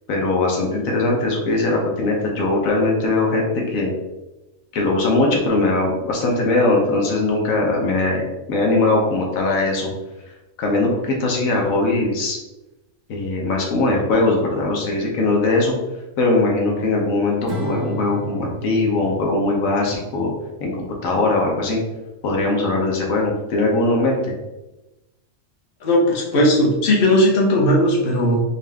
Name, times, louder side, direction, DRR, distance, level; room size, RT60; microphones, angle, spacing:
voice 1, 0.1-3.9 4.7-9.9 10.6-12.4 13.1-15.7 16.2-20.3 20.6-21.8 22.2-24.3, left 2 dB, 75° left, -1 dB, 1.2 m, -20 dB
Acoustic guitar / Strum, 17.5-20.8, right 1 dB, 45° right, 0.6 m, -33 dB
voice 2, 25.8-28.4, left 1 dB, 45° left, -2 dB, 1.0 m, -17 dB
4.1 x 2.3 x 3.3 m, 1.0 s
omnidirectional pair, 1.4 m